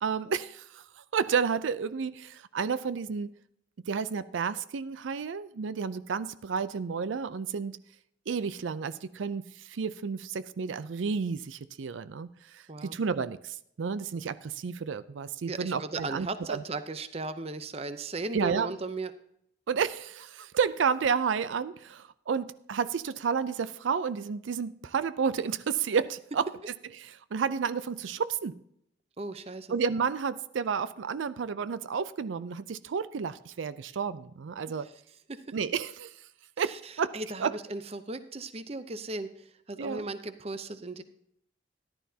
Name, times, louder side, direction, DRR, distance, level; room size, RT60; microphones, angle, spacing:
voice 1, 0.0-3.3 3.9-7.8 8.3-16.6 18.3-18.7 19.7-26.5 27.0-28.6 29.7-34.9 35.5-36.1 36.6-37.1 37.4-37.5 39.8-40.0, right 6 dB, 85° right, 15 dB, 0.4 m, -31 dB
voice 2, 12.7-13.3 15.5-19.1 29.2-29.7 34.7-34.9 35.3-35.5 36.6-41.0, right 3 dB, 30° right, 11 dB, 0.7 m, -37 dB
14.0 x 11.5 x 2.8 m, 0.72 s
head